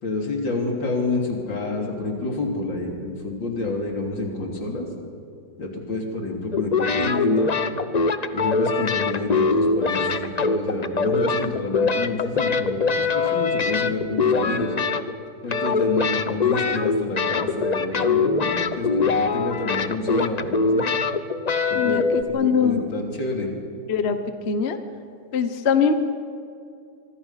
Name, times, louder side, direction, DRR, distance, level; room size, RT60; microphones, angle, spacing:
voice 1, 0.0-4.9 5.6-7.5 8.3-14.7 15.4-20.8 21.7-23.5, left 3 dB, 75° left, 1 dB, 3.9 m, -28 dB
sound 1, 6.5-15.2 15.5-22.2, left 4 dB, 60° left, 0.4 m, -22 dB
voice 2, 22.3-22.8 23.9-24.2 24.4-24.8 25.3-25.9, left 6 dB, 40° left, 8 dB, 1.2 m, -21 dB
25.0 x 24.5 x 5.8 m, 2.5 s
omnidirectional pair, 2.0 m